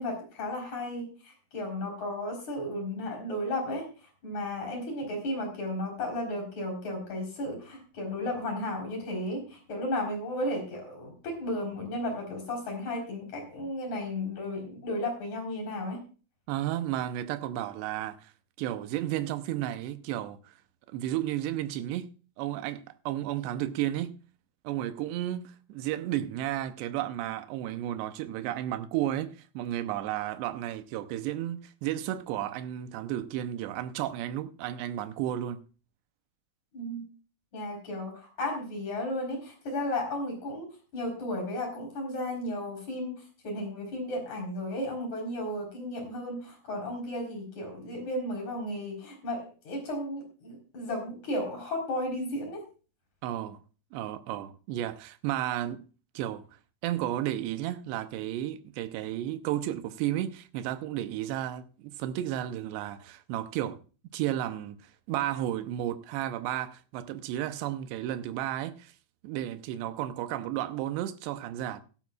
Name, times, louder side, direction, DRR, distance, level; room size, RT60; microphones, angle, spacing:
voice 1, 0.0-3.9 4.2-16.0 36.7-37.0 37.5-40.7 40.9-43.1 43.4-52.6, left 1 dB, 40° left, 5.0 m, -34 dB
voice 2, 16.5-18.3 18.6-20.5 20.9-22.1 22.4-24.2 24.6-35.6 53.2-53.6 53.9-55.8 56.2-56.4 56.8-63.8 64.1-68.9 69.2-71.8, right 12 dB, 80° right, 2.7 m, -33 dB
16.5 x 12.0 x 2.4 m
omnidirectional pair, 5.5 m